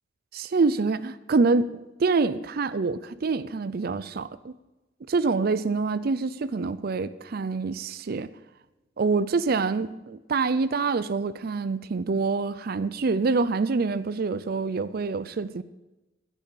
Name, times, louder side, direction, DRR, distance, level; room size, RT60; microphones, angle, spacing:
voice 1, 0.3-4.5 5.1-8.3 9.0-15.6, right 4 dB, 55° right, 0.5 m, -26 dB
15.5 x 6.3 x 7.1 m
head